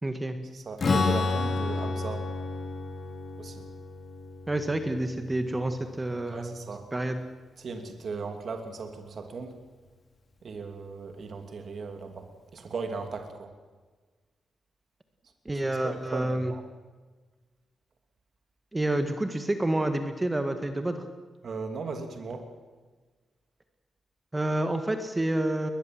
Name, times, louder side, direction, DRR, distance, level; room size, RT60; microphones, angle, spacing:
voice 1, 0.0-0.4 4.5-6.6 6.9-7.2 15.5-16.5 18.7-21.0 24.3-25.7, right 1 dB, 15° right, 7 dB, 1.8 m, -28 dB
voice 2, 0.5-2.2 3.4-3.6 6.3-6.8 7.6-9.5 10.4-12.3 12.5-13.5 15.6-16.6 21.4-22.5, right 4 dB, 50° right, 5 dB, 2.8 m, -37 dB
Strum, 0.8-6.4, left 3 dB, 45° left, 3.3 m, -31 dB
21.5 x 20.5 x 7.8 m, 1.4 s
cardioid pair, 115°, 0 cm